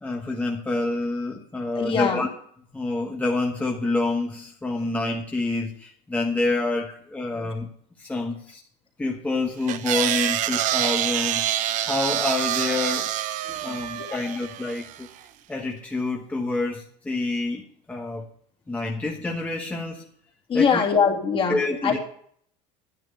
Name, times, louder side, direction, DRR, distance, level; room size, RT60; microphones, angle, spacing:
voice 1, 0.0-2.3 2.7-7.7 8.0-8.6 9.0-13.1 13.6-15.1 15.5-18.3 18.7-20.1 20.5-20.8 21.5-22.0, left 2 dB, 10° left, 0 dB, 1.2 m, -27 dB
voice 2, 1.7-2.2 7.3-7.5 13.5-14.4 20.5-21.9, left 6 dB, 35° left, 0 dB, 2.7 m, -24 dB
sound 1, 9.7-15.0, right 12 dB, 55° right, 0.8 m, -26 dB
10.0 x 9.7 x 5.3 m, 0.63 s
supercardioid pair, 115°, 15 cm